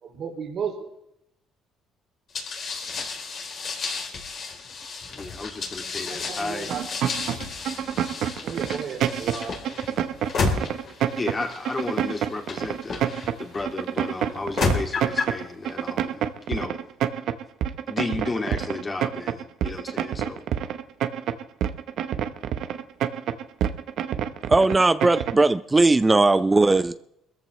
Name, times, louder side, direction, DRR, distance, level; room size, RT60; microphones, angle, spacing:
voice 1, 0.0-0.9 6.1-6.8 8.4-9.6, right 6 dB, 55° right, -3 dB, 3.0 m, -33 dB
sound 1, 2.3-13.6 14.3-15.4, left 4 dB, 55° left, 3.7 m, -31 dB
voice 2, 5.1-6.7 11.1-16.2 16.5-16.8 17.9-20.4, left 3 dB, 25° left, 2 dB, 2.4 m, -33 dB
sound 2, 6.7-25.5, right 10 dB, 70° right, 0.9 m, -27 dB
voice 3, 24.5-26.9, right 2 dB, 20° right, 12 dB, 0.5 m, -18 dB
22.5 x 14.0 x 3.2 m, 0.79 s
supercardioid pair, 85°, 0 cm